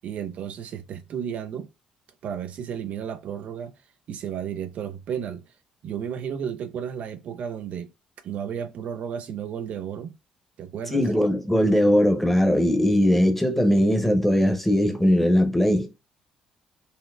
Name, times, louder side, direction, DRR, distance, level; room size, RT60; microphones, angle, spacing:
voice 1, 0.0-1.7 2.2-3.7 4.1-5.5 5.8-7.9 8.2-10.2 10.6-11.1, right 8 dB, 60° right, 0.4 m, -33 dB
voice 2, 10.9-15.9, equal, 5° left, 0.9 m, -20 dB
3.9 x 2.0 x 2.4 m
supercardioid pair, 60°, 3 cm